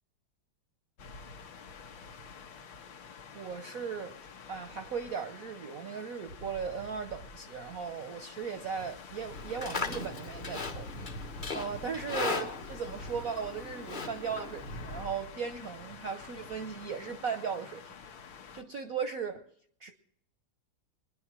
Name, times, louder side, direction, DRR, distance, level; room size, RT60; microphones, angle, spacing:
sound 1, 1.0-18.6, left 3 dB, 65° left, 1.8 m, -47 dB
voice 1, 3.3-4.2 4.5-17.9 18.5-19.5 19.8-19.9, right 6 dB, 65° right, 8 dB, 0.9 m, -37 dB
Livestock farm animals working animals, 9.3-15.0, left 4 dB, 35° left, 0.8 m, -38 dB
22.0 x 10.5 x 6.0 m, 0.68 s
omnidirectional pair, 2.4 m